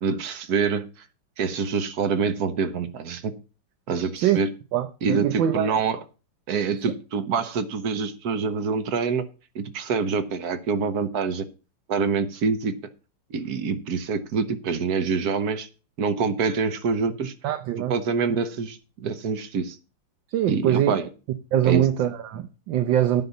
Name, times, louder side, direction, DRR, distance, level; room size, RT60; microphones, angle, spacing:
voice 1, 0.0-0.9 1.4-3.4 3.9-4.5 5.0-6.0 6.5-9.2 9.5-11.4 11.9-12.7 13.3-15.7 16.0-17.3 17.9-19.8 20.5-21.1 21.6-21.8, right 5 dB, 55° right, 1.4 m, -26 dB
voice 2, 4.7-5.7 17.4-17.9 20.3-20.9 21.5-23.2, right 11 dB, 75° right, 1.5 m, -23 dB
9.4 x 5.7 x 6.9 m
omnidirectional pair, 2.1 m